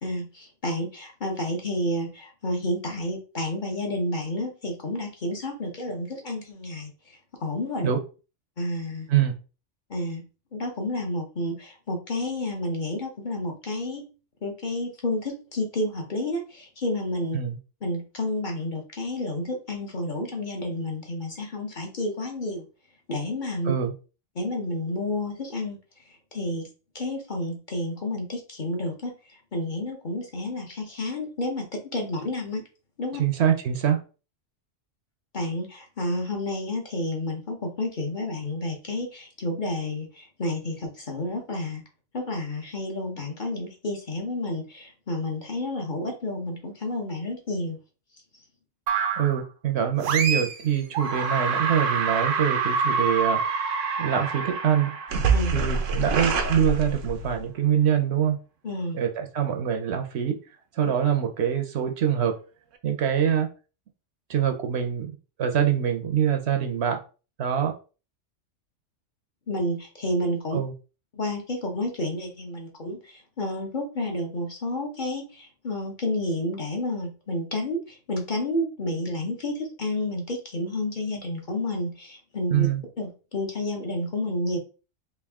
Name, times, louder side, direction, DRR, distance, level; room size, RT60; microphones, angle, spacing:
voice 1, 0.0-7.9 8.6-9.1 9.9-10.2 10.5-14.0 14.4-17.4 17.8-22.7 23.1-23.7 24.3-25.8 26.1-26.7 26.9-32.6 33.0-33.2 35.3-41.8 42.1-47.8 55.3-55.6 58.6-59.0 69.5-70.6 71.1-82.7 83.0-84.6, left 1 dB, 45° left, 1.0 m, -30 dB
voice 2, 33.2-34.0 49.2-53.4 54.0-54.9 55.5-58.4 58.9-60.4 60.8-62.3 62.8-63.5 64.3-67.0 67.4-67.7 70.5-70.7 82.5-82.8, right 9 dB, 65° right, 0.8 m, -24 dB
sound 1, 48.9-49.4 50.0-50.6 50.9-57.4, right 4 dB, 90° right, 1.0 m, -26 dB
3.5 x 2.6 x 3.4 m
omnidirectional pair, 1.3 m